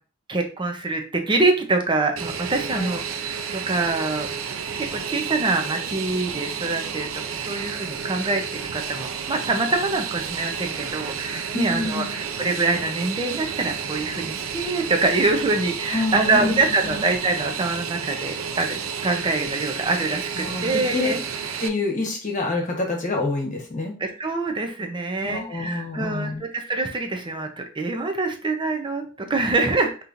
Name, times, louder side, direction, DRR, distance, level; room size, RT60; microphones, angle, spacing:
voice 1, 0.3-3.0 3.3-4.3 4.8-21.2 24.0-29.9, right 3 dB, 25° right, 4 dB, 0.6 m, -25 dB
Fixed-wing aircraft airplane, 2.2-21.7, right 7 dB, 90° right, 0.5 m, -31 dB
voice 2, 11.5-12.1 15.9-16.6 16.9-17.0 20.3-21.1 21.6-23.9 25.2-26.4, left 2 dB, 40° left, 1 dB, 1.2 m, -27 dB
5.3 x 2.9 x 2.6 m, 0.38 s
head